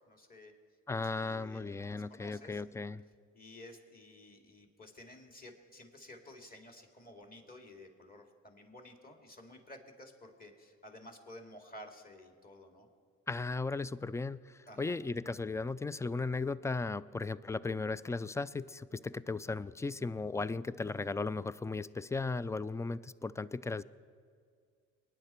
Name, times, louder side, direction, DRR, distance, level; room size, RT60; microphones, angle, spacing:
voice 1, 0.1-0.5 1.1-2.6 3.3-12.9 14.7-15.0, left 1 dB, 25° left, 3 dB, 2.5 m, -53 dB
voice 2, 0.9-3.0 13.3-23.8, left 3 dB, 10° left, 18 dB, 0.3 m, -36 dB
23.0 x 9.9 x 4.5 m, 2.1 s
supercardioid pair, 60°, 34 cm